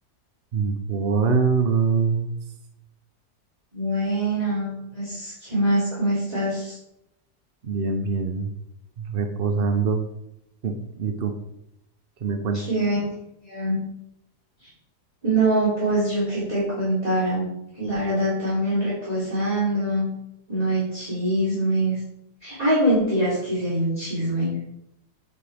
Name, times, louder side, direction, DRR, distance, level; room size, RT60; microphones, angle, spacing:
voice 1, 0.5-2.4 7.6-8.5 9.0-10.0 10.6-11.3 12.2-12.6, right 5 dB, 45° right, 5 dB, 0.8 m, -24 dB
voice 2, 3.7-6.8 12.5-13.1 13.4-13.8 14.6-14.7 15.2-20.1 20.5-22.0 22.4-24.6, right 1 dB, 20° right, -9 dB, 3.5 m, -24 dB
9.3 x 8.4 x 3.5 m, 0.82 s
omnidirectional pair, 1.7 m